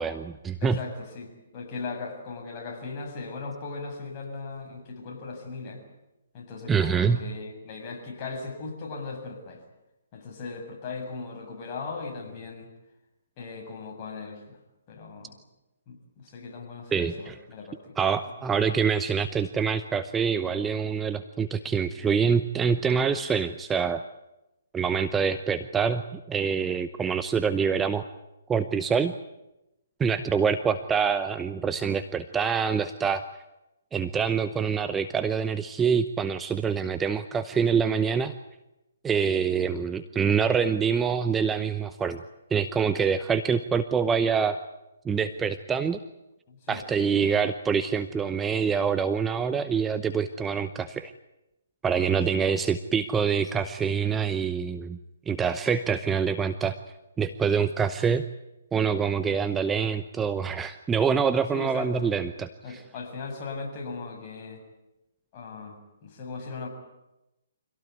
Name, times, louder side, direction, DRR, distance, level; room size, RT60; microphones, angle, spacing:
voice 1, 0.0-0.8 6.7-7.2 16.9-17.4 18.0-24.0 24.7-28.0 28.5-29.1 30.0-33.2 33.9-38.3 39.0-42.2 42.5-44.6 45.0-46.0 46.7-51.1 51.8-55.0 55.3-56.8 57.2-58.2 58.7-62.8, right 6 dB, 10° right, 10 dB, 0.8 m, -25 dB
voice 2, 0.6-5.8 6.3-9.6 10.1-12.7 13.4-14.6 14.9-15.4 15.9-17.9 18.2-18.3 46.5-46.8 47.2-47.3 52.3-52.4 61.5-62.1 62.6-64.6 65.3-66.7, left 4 dB, 35° left, 1 dB, 7.4 m, -38 dB
25.5 x 17.5 x 9.6 m, 0.94 s
hypercardioid pair, 140°, 0 cm